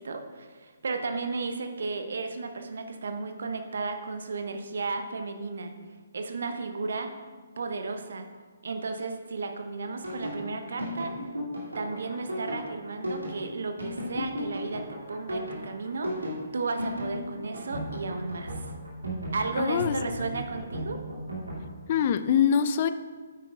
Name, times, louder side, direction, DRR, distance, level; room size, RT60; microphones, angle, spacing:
voice 1, 0.0-5.7 6.1-7.1 7.6-8.3 8.6-11.2 11.7-18.7 19.3-21.0, right 3 dB, 60° right, 6 dB, 0.8 m, -34 dB
sound 1, 10.0-21.6, equal, 80° right, 2.4 m, -35 dB
voice 2, 19.6-20.0 21.9-22.9, left 8 dB, 40° left, 12 dB, 0.3 m, -24 dB
9.1 x 9.0 x 2.3 m, 1.5 s
figure-of-eight pair, 135°, 0 cm